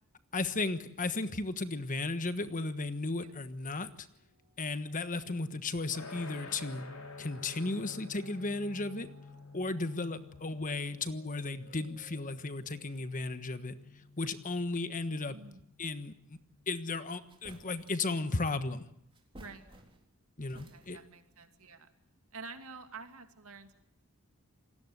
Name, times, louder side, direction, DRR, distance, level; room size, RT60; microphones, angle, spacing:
voice 1, 0.3-4.1 4.6-6.8 7.2-9.1 9.5-13.7 14.2-15.4 15.8-16.4 16.7-18.8 20.4-21.0, left 3 dB, 40° left, 11 dB, 1.4 m, -35 dB
sound 1, 3.5-15.9 16.4-16.5, right 2 dB, 40° right, 6.8 m, -66 dB
sound 2, 5.9-16.9, left 3 dB, 85° left, 4.5 m, -51 dB
voice 2, 15.3-15.6 19.3-19.7 20.5-21.9 22.3-23.8, right 4 dB, 70° right, 7 dB, 2.7 m, -49 dB
sound 3, 17.3-18.1 19.1-20.2 20.5-21.2, right 1 dB, 25° right, 3.9 m, -55 dB
28.0 x 19.5 x 8.1 m, 0.71 s
head